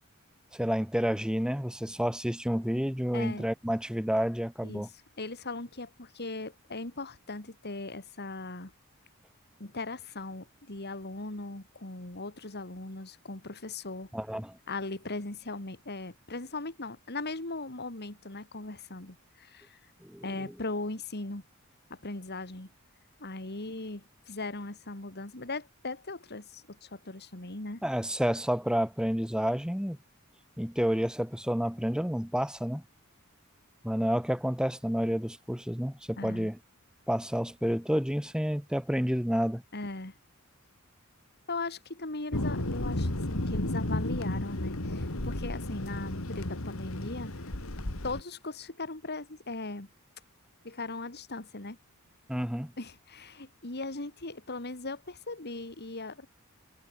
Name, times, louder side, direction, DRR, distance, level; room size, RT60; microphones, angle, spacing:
voice 1, 0.5-4.9 14.1-14.6 20.0-20.2 27.8-30.0 30.6-32.8 33.8-36.6 37.1-39.6 52.3-52.7, equal, 5° right, 3.4 m, -29 dB
voice 2, 3.1-3.5 4.6-4.8 5.2-8.7 9.6-14.1 14.7-19.8 20.2-21.4 21.9-22.7 23.2-27.8 36.2-36.5 39.7-40.2 41.5-47.3 48.0-49.9 50.6-51.8 52.8-56.3, left 2 dB, 50° left, 2.9 m, -39 dB
Thunder, 42.3-48.2, left 1 dB, 70° left, 2.6 m, -33 dB
head